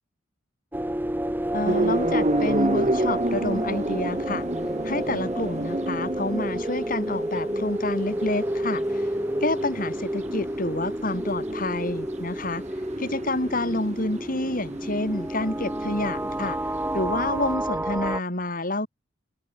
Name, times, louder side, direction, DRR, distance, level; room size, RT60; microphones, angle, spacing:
sound 1, 0.7-18.2, right 1 dB, 10° right, 1.8 m, -30 dB
voice 1, 1.5-4.5 4.8-9.1 9.4-12.6 13.0-16.6 16.9-18.9, left 2 dB, 45° left, 6.8 m, -28 dB
sound 2, 1.6-17.5, right 1 dB, 35° right, 2.1 m, -31 dB
open air
head